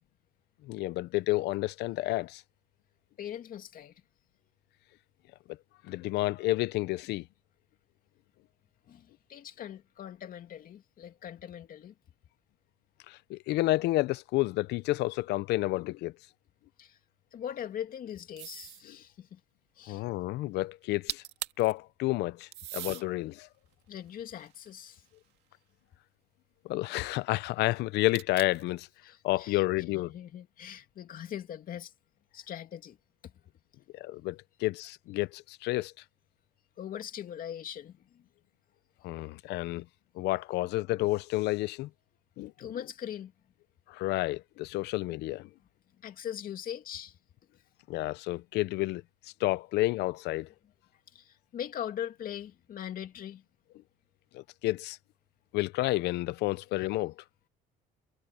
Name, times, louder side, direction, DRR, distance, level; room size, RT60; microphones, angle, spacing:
voice 1, 0.6-2.4 5.8-7.3 13.1-16.1 19.9-21.2 21.6-23.5 26.6-28.9 29.2-30.1 33.9-35.9 39.0-39.8 40.1-41.9 42.4-42.5 43.9-45.5 47.9-49.0 49.4-50.5 54.3-55.0 55.5-57.1, left 18 dB, 80° left, 0.6 m, -30 dB
voice 2, 3.2-3.9 8.9-11.9 16.8-17.0 17.3-19.4 19.8-20.0 23.9-25.0 29.0-29.6 30.1-31.9 32.3-33.0 33.2-33.3 36.8-38.2 42.6-43.3 46.0-47.2 51.1-53.4, left 10 dB, 55° left, 2.6 m, -41 dB
sound 1, 18.4-18.9 20.8-20.9 21.1-21.7 22.5-23.1 23.7-25.2 28.1-28.7, right 15 dB, 85° right, 2.1 m, -40 dB
cardioid pair, 110°, 17 cm